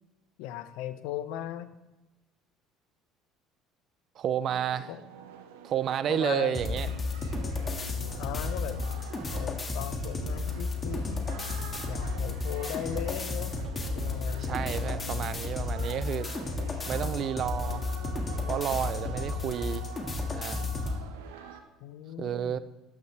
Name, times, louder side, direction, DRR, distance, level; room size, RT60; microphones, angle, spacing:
voice 1, 0.4-1.7 4.9-5.0 6.1-6.5 8.2-8.9 9.3-11.3 11.9-13.5 13.9-14.6 21.8-22.6, left 12 dB, 75° left, 12 dB, 0.7 m, -38 dB
voice 2, 4.2-4.9 5.6-6.9 14.4-16.3 16.9-17.8 18.5-19.9 20.3-20.6 22.2-22.6, right 9 dB, 55° right, 16 dB, 0.5 m, -31 dB
sound 1, 4.4-21.6, right 8 dB, 85° right, 0.9 m, -46 dB
sound 2, 6.5-21.0, left 3 dB, 30° left, 1.8 m, -33 dB
12.0 x 9.7 x 3.3 m, 1.0 s
hypercardioid pair, 75°, 0 cm